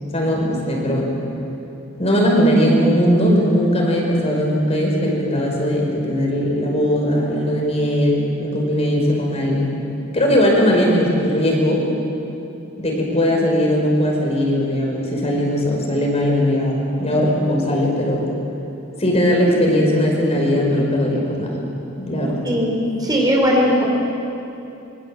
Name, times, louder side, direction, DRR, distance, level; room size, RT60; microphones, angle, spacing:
voice 1, 0.1-1.1 2.0-9.7 10.1-11.9 12.8-18.2 19.0-21.6 22.0-22.4, equal, 30° left, -1 dB, 5.3 m, -19 dB
voice 2, 22.4-23.8, equal, 20° right, -1 dB, 4.1 m, -18 dB
25.5 x 24.0 x 7.7 m, 2.9 s
head